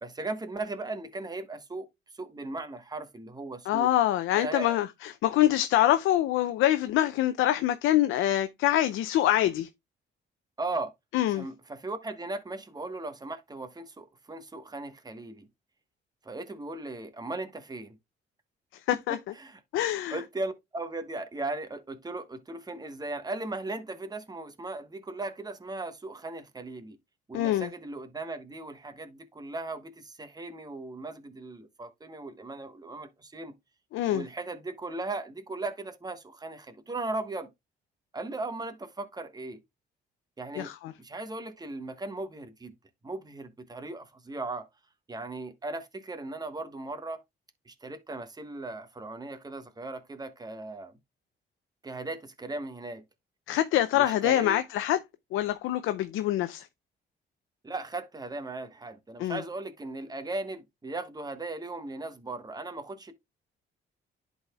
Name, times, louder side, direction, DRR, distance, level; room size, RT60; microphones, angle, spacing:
voice 1, 0.0-1.9 2.1-3.9 4.4-4.8 10.6-10.9 11.3-15.5 16.2-18.0 19.4-19.6 20.1-27.0 27.3-33.5 34.1-37.5 38.1-39.6 40.4-40.7 41.0-42.7 43.0-44.7 45.1-47.2 47.7-50.9 51.8-53.0 53.9-54.6 57.6-63.1, right 2 dB, 20° right, 1.2 m, -37 dB
voice 2, 3.7-9.7 11.1-11.5 18.9-19.2 19.7-20.2 27.3-27.7 33.9-34.2 40.6-40.9 53.5-55.0 55.3-56.7 59.2-59.4, left 13 dB, 85° left, 0.5 m, -25 dB
11.0 x 4.1 x 2.3 m
cardioid pair, 90°, 20 cm